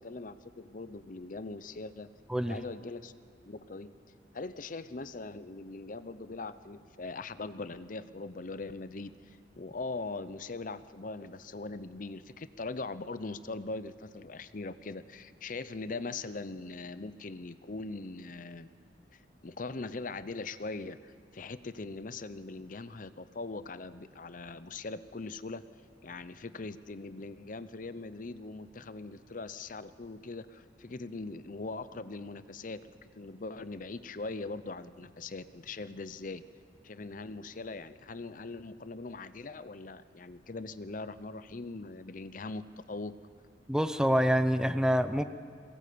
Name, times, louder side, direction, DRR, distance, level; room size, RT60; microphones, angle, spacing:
voice 1, 0.0-2.1 2.5-3.1 3.5-3.9 4.3-18.7 19.1-25.6 26.0-36.4 36.8-43.1, left 3 dB, 50° left, 14 dB, 0.7 m, -41 dB
voice 2, 43.7-45.2, equal, 5° right, 11 dB, 0.7 m, -26 dB
22.5 x 19.0 x 8.5 m, 2.3 s
head